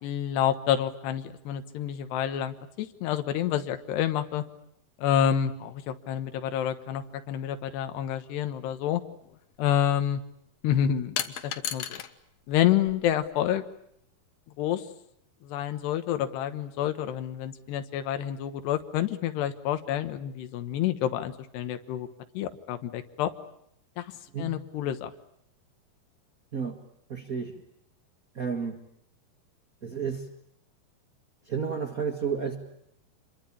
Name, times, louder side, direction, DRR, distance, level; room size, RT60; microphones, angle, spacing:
voice 1, 0.0-4.4 5.0-9.0 9.6-10.2 10.6-12.0 12.5-13.6 14.6-14.8 15.4-22.1 22.3-23.3 24.0-24.1 24.4-25.1, left 10 dB, 80° left, 8 dB, 3.4 m, -28 dB
sound 1, 9.2-9.4 11.2-12.1 12.5-13.3, left 9 dB, 65° left, 1.6 m, -34 dB
voice 2, 27.1-27.5 28.3-28.8 29.8-30.3 31.5-32.6, right 6 dB, 50° right, 5 dB, 1.0 m, -31 dB
27.5 x 23.0 x 8.7 m, 0.72 s
omnidirectional pair, 4.7 m